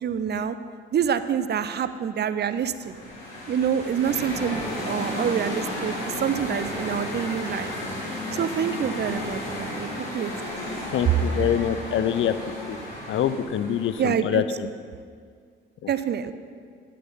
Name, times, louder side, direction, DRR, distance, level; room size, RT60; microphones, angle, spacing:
voice 1, 0.0-0.6 0.9-2.9 3.5-7.7 8.3-9.9 10.1-10.5 14.0-14.4 15.9-16.3, right 8 dB, 35° right, 12 dB, 0.6 m, -26 dB
sound 1, 2.6-14.0, left 1 dB, 70° left, 3.4 m, -33 dB
voice 2, 10.9-12.3 12.7-12.8 13.1-14.7 15.8-15.9, left 9 dB, 40° left, 12 dB, 0.7 m, -25 dB
12.5 x 8.6 x 5.5 m, 2.1 s
figure-of-eight pair, 45°, 30 cm